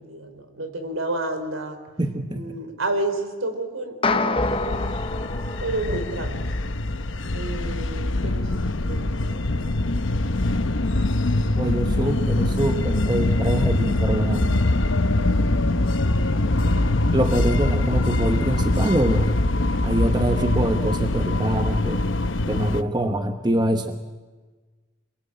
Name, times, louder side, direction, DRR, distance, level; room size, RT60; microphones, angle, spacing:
voice 1, 0.0-1.8 2.3-5.0 5.6-6.5 7.3-11.0 16.0-17.0, right 2 dB, 80° right, 7 dB, 4.0 m, -32 dB
voice 2, 2.0-2.5 11.6-14.6 17.1-19.3 19.8-22.0 22.5-24.0, right 1 dB, 20° right, 7 dB, 1.1 m, -24 dB
sound 1, 4.0-6.5, left 3 dB, 25° left, 0.8 m, -26 dB
sound 2, 4.4-22.8, left 2 dB, 65° left, 1.0 m, -23 dB
27.0 x 21.5 x 8.7 m, 1.3 s
head